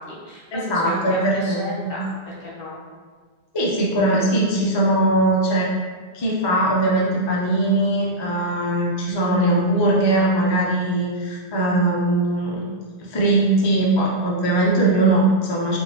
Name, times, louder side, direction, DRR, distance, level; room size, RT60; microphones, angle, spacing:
voice 1, 0.0-2.8, left 1 dB, 60° left, -5 dB, 1.1 m, -34 dB
voice 2, 0.5-1.9 3.5-5.7 6.1-12.6 13.0-15.8, right 1 dB, 35° left, -4 dB, 0.4 m, -20 dB
3.4 x 2.5 x 2.8 m, 1.5 s
omnidirectional pair, 1.1 m